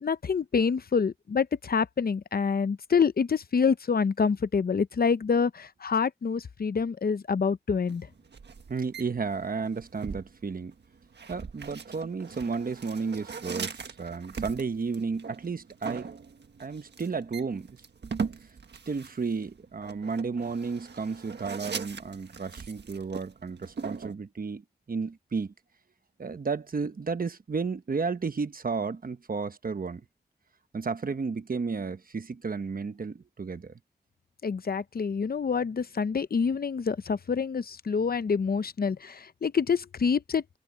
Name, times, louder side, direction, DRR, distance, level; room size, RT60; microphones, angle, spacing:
voice 1, 0.0-8.1 34.4-40.4, left 5 dB, 60° left, 0.7 m, -27 dB
sound 1, 7.8-24.1, right 5 dB, 90° right, 1.6 m, -40 dB
voice 2, 8.7-10.7 11.3-16.1 16.6-17.7 18.9-25.5 26.2-30.0 30.7-33.7, right 4 dB, 55° right, 1.1 m, -33 dB
wide cardioid pair, 80°, 17 cm